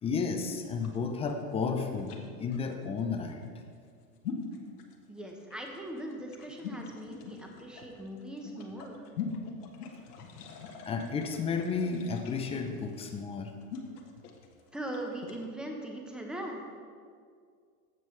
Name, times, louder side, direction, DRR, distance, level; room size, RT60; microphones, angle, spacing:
voice 1, 0.0-2.1 2.4-3.4 10.9-13.5, left 5 dB, 15° left, 5 dB, 0.5 m, -32 dB
sound 1, 0.7-15.4, left 6 dB, 80° left, 1.3 m, -44 dB
voice 2, 5.1-9.1 14.7-16.6, right 1 dB, ahead, 1 dB, 0.9 m, -40 dB
15.0 x 5.5 x 3.2 m, 2.1 s
hypercardioid pair, 125°, 45 cm